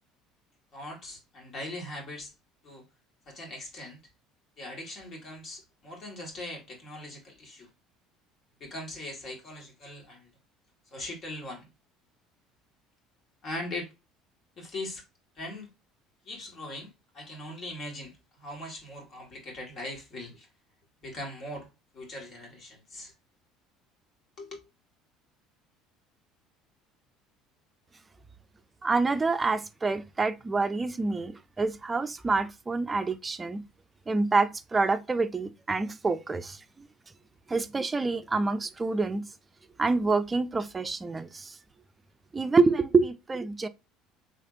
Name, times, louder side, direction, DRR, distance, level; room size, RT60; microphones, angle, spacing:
voice 1, 0.7-2.3 2.6-2.8 3.2-4.0 4.6-7.7 8.6-10.3 10.9-11.7 13.4-13.9 14.6-15.0 15.4-15.7 16.2-20.5 21.0-21.7 21.9-23.1 24.4-24.6, left 1 dB, 50° left, 1.8 m, -40 dB
voice 2, 28.8-33.6 34.1-36.9 37.5-39.2 39.8-41.6 42.3-43.7, right 3 dB, 25° right, 0.5 m, -27 dB
3.5 x 3.3 x 2.4 m
hypercardioid pair, 65°, 0 cm